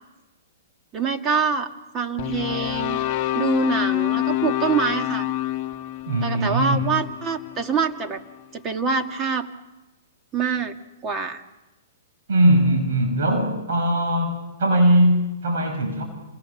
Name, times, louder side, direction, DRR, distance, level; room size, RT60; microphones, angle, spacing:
voice 1, 0.9-3.0 3.3-5.3 6.2-8.2 8.5-9.5 10.3-10.8 11.0-11.4, right 5 dB, 25° right, 5 dB, 1.9 m, -25 dB
sound 1, 2.2-8.4, left 14 dB, 40° left, 1.2 m, -27 dB
voice 2, 6.1-6.9 12.3-16.0, right 1 dB, 70° right, 4 dB, 6.6 m, -20 dB
28.0 x 22.5 x 7.2 m, 1.1 s
hypercardioid pair, 135°, 0 cm